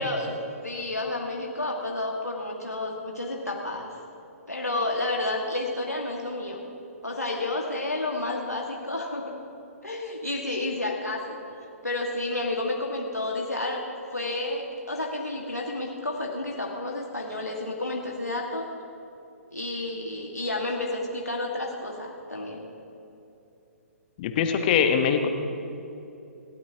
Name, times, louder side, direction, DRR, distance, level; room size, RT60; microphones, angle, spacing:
voice 1, 0.0-3.9 4.5-6.6 7.0-9.4 9.8-11.4 11.8-13.8 14.1-18.7 19.5-22.7, left 2 dB, 90° left, -1 dB, 1.8 m, -30 dB
voice 2, 24.2-25.3, left 7 dB, 35° left, 6 dB, 1.2 m, -22 dB
27.0 x 13.0 x 2.9 m, 2.9 s
figure-of-eight pair, 130°, 8 cm